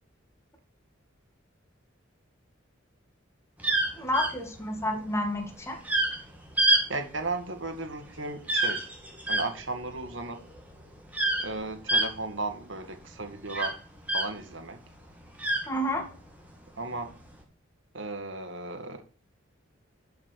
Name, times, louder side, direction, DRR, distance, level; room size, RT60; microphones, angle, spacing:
sound 1, 3.6-14.6 14.9-16.3 17.0-17.3, right 1 dB, 10° right, 2.4 m, -28 dB
voice 1, 4.0-5.8 15.7-16.1, left 1 dB, 15° left, 3 dB, 2.1 m, -30 dB
voice 2, 6.9-8.9 9.3-10.4 11.4-13.8 14.1-14.8 16.8-17.1 17.9-19.0, right 2 dB, 70° right, 7 dB, 2.1 m, -35 dB
12.0 x 5.9 x 4.5 m, 0.39 s
head